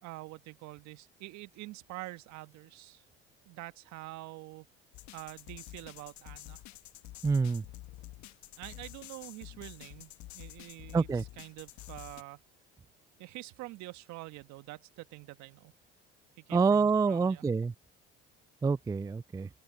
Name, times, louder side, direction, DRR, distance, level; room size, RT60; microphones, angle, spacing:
voice 1, 0.0-3.0 3.4-4.7 5.1-6.6 8.6-12.4 13.2-15.7 16.4-17.4, right 19 dB, 70° right, 1.5 m, -46 dB
sound 1, 4.9-12.2, left 17 dB, 65° left, 1.4 m, -49 dB
voice 2, 7.2-7.6 10.9-11.2 16.5-17.7 18.6-19.5, right 5 dB, 10° right, 0.3 m, -27 dB
open air
hypercardioid pair, 65°, 30 cm